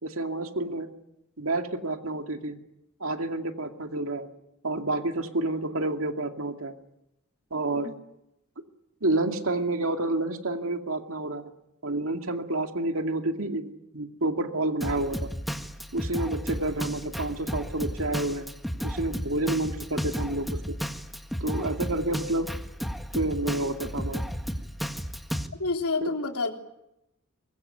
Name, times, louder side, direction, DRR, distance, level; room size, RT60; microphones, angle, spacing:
voice 1, 0.0-0.9 1.4-2.6 3.0-4.3 4.6-6.7 7.5-7.9 9.0-11.5 11.8-15.3 15.9-18.5 18.8-20.8 21.4-22.5 23.1-24.2 26.0-26.1, right 2 dB, 70° right, 5 dB, 2.4 m, -29 dB
Drum kit, 14.8-25.5, equal, ahead, 1.8 m, -33 dB
voice 2, 25.6-26.5, left 3 dB, 85° left, 3 dB, 3.6 m, -28 dB
24.5 x 22.5 x 9.4 m, 0.86 s
head